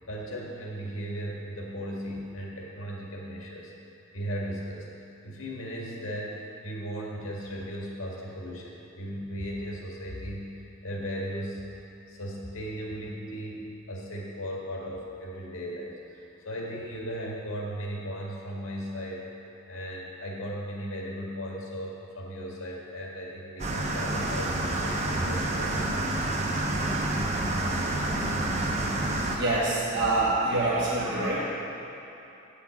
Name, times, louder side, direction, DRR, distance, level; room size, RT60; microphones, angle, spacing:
voice 1, 0.1-3.7 4.1-4.9 5.2-11.6 12.1-19.2 19.7-26.1, equal, 90° left, -3 dB, 1.9 m, -36 dB
sound 1, 23.6-29.4, right 2 dB, 35° right, 0.8 m, -28 dB
voice 2, 29.2-31.5, right 2 dB, 55° right, -9 dB, 1.4 m, -26 dB
8.9 x 5.8 x 7.2 m, 2.9 s
head